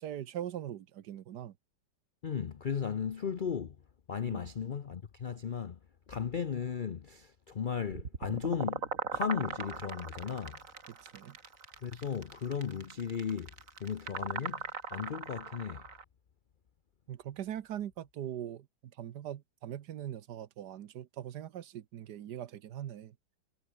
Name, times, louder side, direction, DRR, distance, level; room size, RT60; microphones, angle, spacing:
voice 1, 0.0-1.5 4.2-4.4 10.9-11.4 17.1-18.7 19.0-23.1, right 11 dB, 70° right, 1.5 m, -41 dB
voice 2, 2.2-3.8 4.1-5.8 6.1-10.6 11.8-13.5 13.8-15.8, left 7 dB, 80° left, 0.4 m, -36 dB
sound 1, 7.9-16.0, right 5 dB, 45° right, 2.4 m, -39 dB
omnidirectional pair, 1.9 m